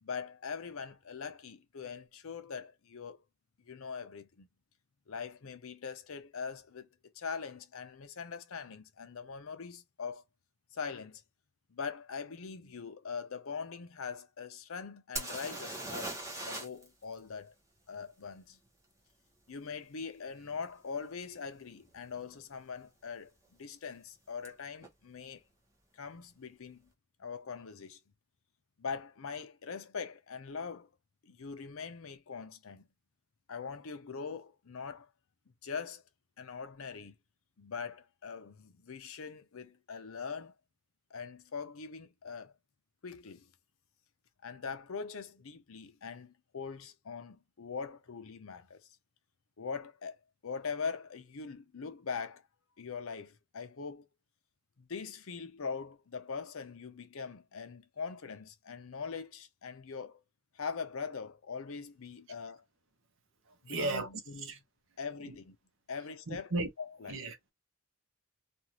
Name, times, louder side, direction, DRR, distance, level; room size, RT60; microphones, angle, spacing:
voice 1, 0.0-3.2 3.7-4.5 5.1-6.9 7.1-10.2 10.7-11.2 11.7-16.2 16.5-17.5 17.9-18.6 19.5-23.3 23.6-25.4 25.9-26.9 27.2-28.0 28.8-30.9 31.2-32.9 33.5-35.1 35.6-36.0 36.4-37.2 37.6-40.5 41.1-42.5 43.0-43.5 44.4-48.9 49.6-50.2 50.4-52.4 52.8-54.1 54.8-60.2 60.5-62.6 63.6-64.5 65.0-65.6 65.9-66.5 66.8-67.2, left 5 dB, 75° left, 0.6 m, -42 dB
sound 1, 15.2-16.9 17.1-17.2 20.6-20.7 21.4-21.6 21.8-22.4 24.5-24.6 24.8-24.9, right 2 dB, 15° right, 0.9 m, -40 dB
voice 2, 63.5-64.1 64.4-64.6 65.3-65.4 66.3-66.7 67.1-67.5, right 2 dB, 65° right, 0.8 m, -35 dB
2.6 x 2.4 x 2.9 m
head